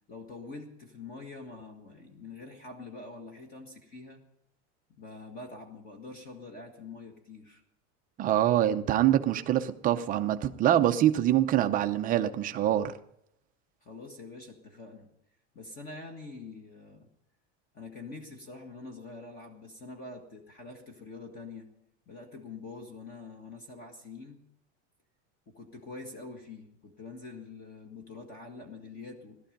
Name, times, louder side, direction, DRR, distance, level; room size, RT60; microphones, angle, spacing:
voice 1, 0.1-4.2 5.0-7.6 13.8-15.1 15.5-17.1 17.7-21.7 22.1-24.4 25.5-29.4, left 3 dB, 25° left, 1.7 m, -45 dB
voice 2, 8.2-12.9, right 12 dB, 25° right, 0.6 m, -25 dB
18.5 x 12.5 x 5.2 m
cardioid pair, 170°, 35 cm